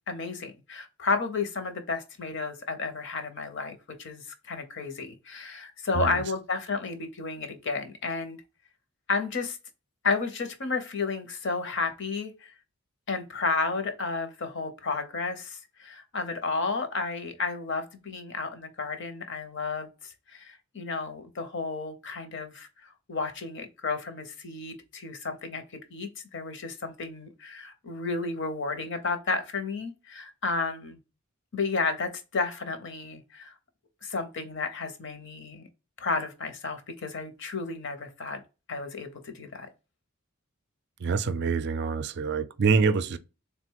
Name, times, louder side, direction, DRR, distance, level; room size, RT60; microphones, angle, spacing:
voice 1, 0.1-8.4 9.1-9.6 10.0-12.5 13.1-31.0 31.5-33.5 34.0-35.7 36.0-38.4 38.7-39.7, left 4 dB, 55° left, 0.8 m, -32 dB
voice 2, 41.0-43.2, right 5 dB, 50° right, 0.4 m, -25 dB
3.8 x 2.2 x 4.5 m
head